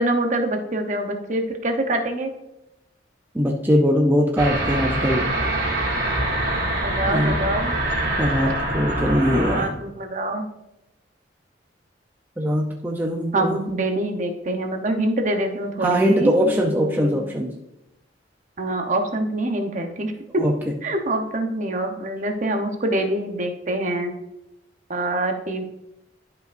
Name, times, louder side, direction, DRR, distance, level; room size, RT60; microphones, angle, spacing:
voice 1, 0.0-2.3 6.8-7.8 9.3-10.5 13.3-17.2 18.6-20.4 20.8-24.1 24.9-25.6, right 1 dB, 40° right, 5 dB, 0.9 m, -25 dB
voice 2, 3.3-5.3 7.1-7.4 8.2-9.8 12.4-13.6 15.8-17.5 20.4-20.7, equal, 10° right, 0 dB, 0.5 m, -21 dB
sound 1, 4.4-9.6, right 1 dB, 70° right, 2.6 m, -24 dB
11.5 x 5.3 x 2.6 m, 0.90 s
head